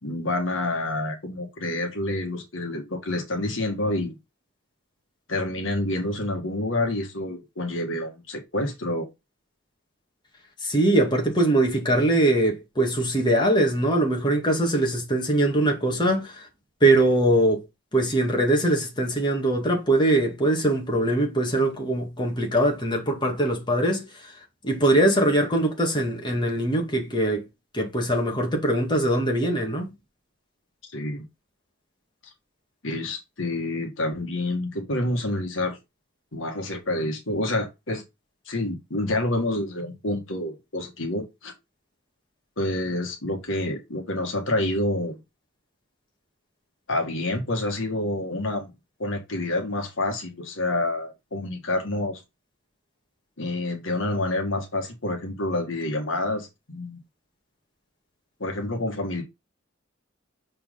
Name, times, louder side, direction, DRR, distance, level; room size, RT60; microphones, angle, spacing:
voice 1, 0.0-4.2 5.3-9.1 30.9-31.2 32.8-35.8 36.3-38.0 38.5-41.5 42.6-45.2 46.9-48.7 49.0-52.2 53.4-57.0 58.4-59.2, left 1 dB, 70° left, 1.8 m, -28 dB
voice 2, 10.6-16.5 16.8-17.6 17.9-24.1 24.6-27.4 27.7-29.9, right 1 dB, 25° left, 2.1 m, -22 dB
6.4 x 4.4 x 3.8 m
head